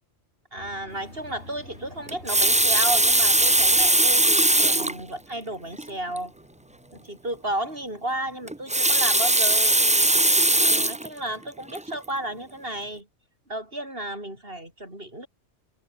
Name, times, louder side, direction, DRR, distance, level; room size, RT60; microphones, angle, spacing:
voice 1, 0.5-6.3 6.9-10.1 10.6-13.1 13.5-15.3, right 1 dB, 50° right, 7.6 m, -33 dB
sound 1, 0.6-8.6, left 1 dB, 65° left, 6.8 m, -49 dB
Water tap faucet, 2.1-5.0 5.8-5.9 6.2-6.3 8.5-11.1 11.7-11.9, right 1 dB, 10° right, 0.4 m, -20 dB
omnidirectional pair, 1.2 m